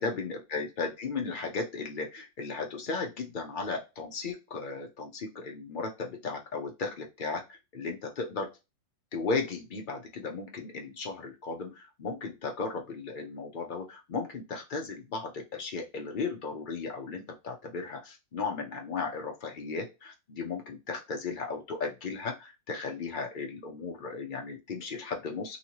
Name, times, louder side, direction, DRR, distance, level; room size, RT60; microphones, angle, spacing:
voice 1, 0.0-7.4 7.7-8.5 9.1-25.6, left 4 dB, 70° left, 2 dB, 0.4 m, -35 dB
3.0 x 2.8 x 2.8 m, 0.26 s
omnidirectional pair, 1.7 m